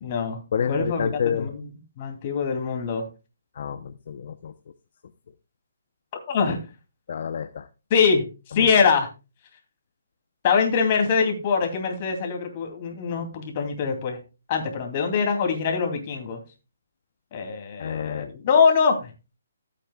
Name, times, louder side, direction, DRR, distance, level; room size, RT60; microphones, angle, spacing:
voice 1, 0.0-0.4 0.7-1.6 2.0-3.0 6.3-6.6 7.9-8.3 8.5-9.1 10.4-14.2 14.5-16.4 17.3-19.1, left 5 dB, 35° left, 4 dB, 2.7 m, -23 dB
voice 2, 0.5-1.5 3.6-4.5 7.1-7.7 8.5-8.7 17.8-18.4, left 7 dB, 50° left, 9 dB, 0.7 m, -29 dB
14.5 x 8.5 x 2.3 m, 0.29 s
hypercardioid pair, 160°, 0 cm